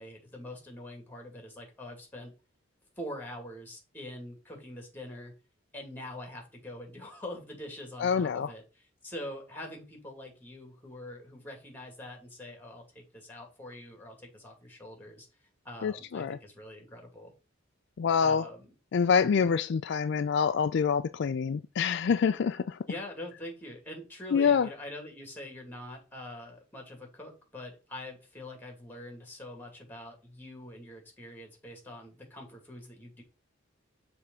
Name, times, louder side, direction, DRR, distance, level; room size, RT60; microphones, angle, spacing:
voice 1, 0.0-2.3 3.0-5.3 5.7-15.3 15.6-17.3 18.2-18.7 22.9-33.2, left 1 dB, 10° left, 2.3 m, -44 dB
voice 2, 8.0-8.5 15.8-16.4 18.0-18.5 18.9-22.8 24.3-24.7, left 6 dB, 60° left, 0.4 m, -26 dB
6.6 x 3.5 x 5.5 m
head